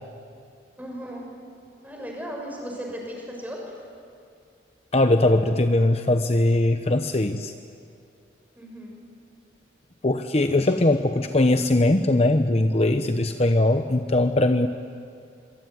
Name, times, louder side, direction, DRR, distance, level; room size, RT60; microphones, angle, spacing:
voice 1, 0.8-1.2 1.8-3.7 8.5-8.9 10.5-11.1, equal, 10° right, -1 dB, 6.6 m, -36 dB
voice 2, 4.9-7.5 10.0-14.7, left 2 dB, 35° left, 7 dB, 0.9 m, -20 dB
25.5 x 24.0 x 9.6 m, 2.5 s
head